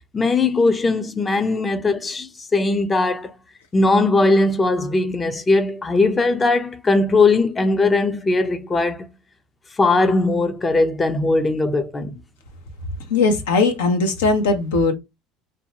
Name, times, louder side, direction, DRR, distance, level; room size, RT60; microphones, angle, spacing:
voice 1, 0.1-3.3 3.7-9.1 9.8-12.2, left 3 dB, 25° left, 0.5 m, -19 dB
voice 2, 13.1-14.9, left 3 dB, 85° left, 0.7 m, -19 dB
2.7 x 2.2 x 2.7 m
hypercardioid pair, 80°, 0 cm